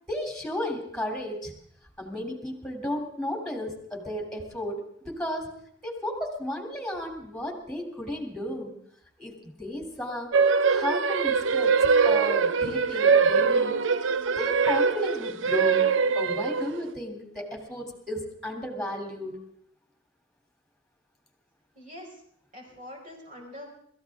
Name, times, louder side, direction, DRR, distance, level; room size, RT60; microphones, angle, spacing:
voice 1, 0.1-1.5 2.0-5.5 5.8-8.7 9.2-10.3 10.7-13.8 14.3-15.8 16.1-19.4, left 1 dB, 5° left, 2 dB, 3.2 m, -34 dB
sound 1, 10.3-16.9, right 5 dB, 90° right, 0.7 m, -23 dB
voice 2, 21.7-22.2 22.5-23.7, left 1 dB, 45° right, -1 dB, 5.6 m, -44 dB
26.0 x 14.5 x 3.7 m, 0.70 s
head